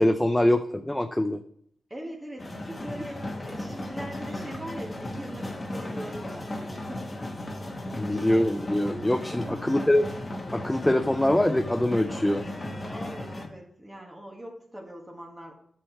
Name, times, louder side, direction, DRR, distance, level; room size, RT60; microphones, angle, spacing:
voice 1, 0.0-1.4 7.9-10.1 10.5-12.4, left 1 dB, 10° left, 8 dB, 0.4 m, -24 dB
voice 2, 1.9-7.1 9.3-9.7 12.9-15.5, right 1 dB, 15° right, 0 dB, 1.4 m, -41 dB
sound 1, 2.4-13.5, left 1 dB, 25° left, 1.3 m, -36 dB
7.4 x 4.5 x 4.5 m, 0.67 s
cardioid pair, 75°, 0 cm